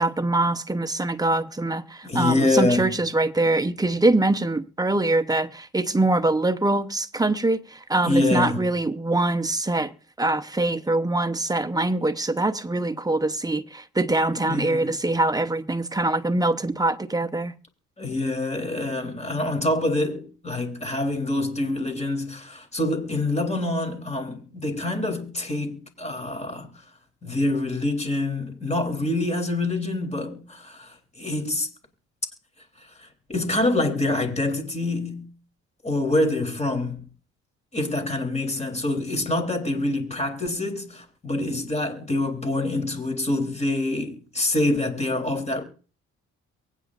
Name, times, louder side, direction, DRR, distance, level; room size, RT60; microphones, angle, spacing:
voice 1, 0.0-9.9 10.2-17.5, right 2 dB, 10° right, 0.9 m, -23 dB
voice 2, 2.0-2.9 8.0-8.7 14.4-14.9 18.0-26.7 27.2-31.7 32.8-35.3 35.8-37.0 37.7-45.6, left 2 dB, 20° left, 3.3 m, -26 dB
23.5 x 9.2 x 2.5 m
cardioid pair, 90°, 30 cm